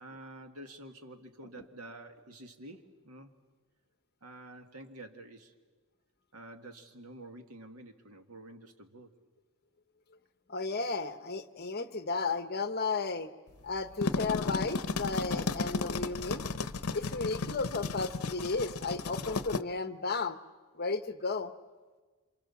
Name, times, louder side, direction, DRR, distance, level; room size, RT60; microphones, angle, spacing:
voice 1, 0.0-3.3 4.2-5.5 6.3-9.1, right 1 dB, 85° right, 6 dB, 2.1 m, -49 dB
voice 2, 10.5-13.3 13.6-16.4 16.9-20.4 20.7-21.5, left 4 dB, 45° left, 11 dB, 1.1 m, -34 dB
sound 1, 13.8-19.6, left 4 dB, 75° left, 0.8 m, -34 dB
28.5 x 27.0 x 7.2 m, 1.4 s
head